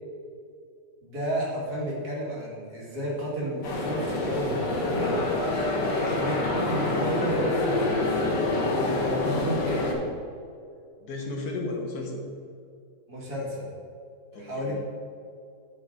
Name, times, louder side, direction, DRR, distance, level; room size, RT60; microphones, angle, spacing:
voice 1, 1.0-5.2 5.9-8.3 8.7-9.9 13.1-13.7 14.3-14.8, equal, 60° right, -5 dB, 2.5 m, -32 dB
sound 1, 3.6-9.9, left 2 dB, 80° left, 1.9 m, -26 dB
voice 2, 5.7-6.0 11.0-12.2 14.3-14.8, left 2 dB, 65° left, 1 dB, 1.5 m, -34 dB
11.0 x 5.2 x 3.8 m, 2.4 s
omnidirectional pair, 1.9 m